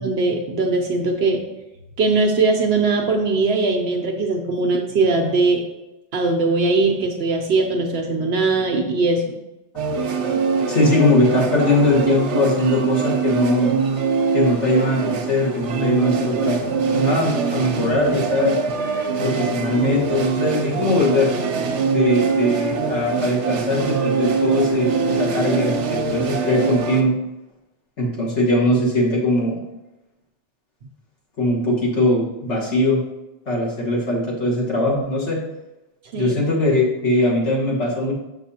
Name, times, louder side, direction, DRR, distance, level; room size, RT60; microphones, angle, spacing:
voice 1, 0.0-1.4 2.0-5.6 6.1-9.3 36.1-36.3, right 3 dB, 65° right, 2 dB, 0.9 m, -20 dB
sound 1, 9.8-27.0, right 5 dB, 85° right, 1.1 m, -23 dB
voice 2, 10.7-13.7 14.3-18.6 19.2-21.3 21.9-27.1 28.0-29.6 31.4-33.0 33.5-35.4 36.2-38.1, left 1 dB, 85° left, -4 dB, 2.0 m, -20 dB
6.4 x 6.1 x 2.8 m, 0.98 s
omnidirectional pair, 1.2 m